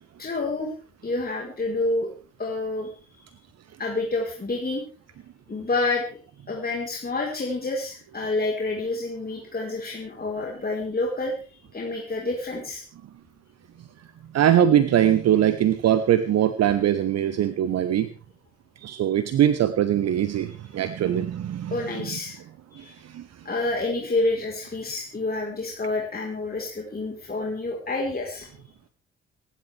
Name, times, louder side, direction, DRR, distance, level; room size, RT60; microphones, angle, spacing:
voice 1, 0.2-0.7 1.0-2.1 2.4-2.9 3.8-4.8 5.5-6.0 6.5-11.3 11.7-12.8 21.7-22.4 22.7-22.9 23.4-28.5, left 2 dB, 25° left, -1 dB, 4.3 m, -28 dB
voice 2, 14.3-18.1 18.8-22.0 22.8-23.3, right 10 dB, 50° right, 13 dB, 1.1 m, -22 dB
26.0 x 11.5 x 3.4 m, 0.38 s
figure-of-eight pair, 40°, 33 cm